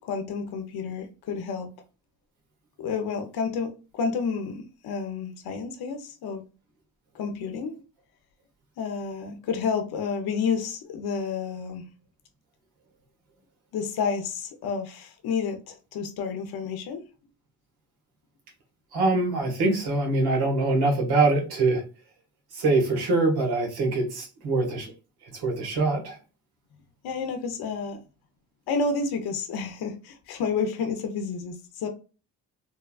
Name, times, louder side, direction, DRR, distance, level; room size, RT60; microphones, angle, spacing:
voice 1, 0.0-1.7 2.8-6.4 7.1-7.8 8.8-11.8 13.7-17.0 27.0-28.0 28.7-31.9, left 5 dB, 80° left, 0.7 m, -30 dB
voice 2, 18.9-21.8 22.5-24.9 25.3-26.2, right 3 dB, 90° right, 1.2 m, -24 dB
3.3 x 2.2 x 2.3 m
cardioid pair, 75°, 37 cm